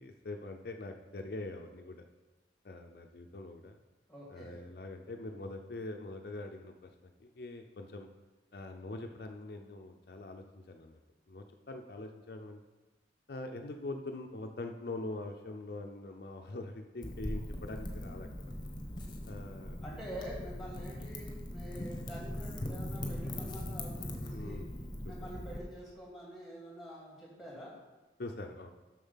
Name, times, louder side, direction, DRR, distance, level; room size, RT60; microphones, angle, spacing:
voice 1, 0.0-2.0 2.6-3.8 4.3-6.7 7.0-8.1 8.5-11.0 11.3-12.6 13.3-18.3 19.3-19.8 21.9-22.0 24.3-24.7 25.2-25.3 28.2-28.7, left 2 dB, 60° left, 4 dB, 0.5 m, -43 dB
voice 2, 4.1-4.6 19.8-24.6 25.1-27.7, equal, ahead, -4 dB, 2.3 m, -47 dB
Wind / Fire, 17.0-25.6, left 1 dB, 25° left, 1.1 m, -40 dB
7.0 x 6.4 x 5.6 m, 1.2 s
head